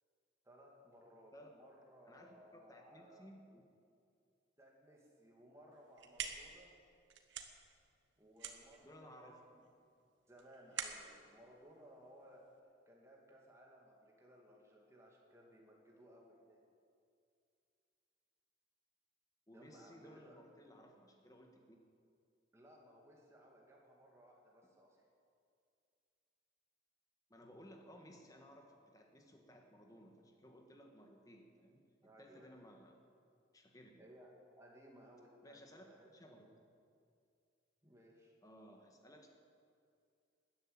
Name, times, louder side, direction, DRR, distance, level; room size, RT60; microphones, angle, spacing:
voice 1, 0.4-3.3 4.6-6.7 8.2-9.6 10.3-12.4 12.9-16.6 19.5-20.3 22.5-25.0 32.0-32.5 34.0-34.3 34.6-36.2 37.8-38.3, equal, 15° right, -2 dB, 2.4 m, -61 dB
voice 2, 2.0-3.6 8.8-9.5 19.5-21.8 27.3-33.0 33.5-34.0 35.4-36.5 38.4-39.3, equal, 20° left, 3 dB, 1.6 m, -59 dB
sound 1, 5.7-12.6, right 7 dB, 70° right, 1.2 m, -48 dB
13.0 x 10.5 x 8.8 m, 2.4 s
head